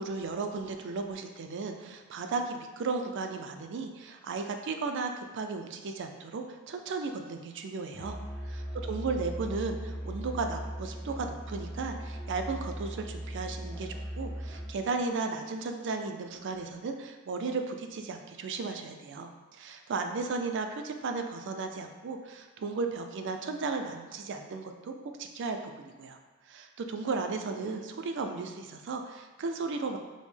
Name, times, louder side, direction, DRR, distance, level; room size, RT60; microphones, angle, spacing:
voice 1, 0.0-8.2 8.5-26.2 26.5-30.0, right 4 dB, 60° right, 5 dB, 0.4 m, -35 dB
Musical instrument, 7.9-14.8, equal, 15° left, 0.5 m, -38 dB
5.1 x 2.1 x 3.2 m, 1.4 s
head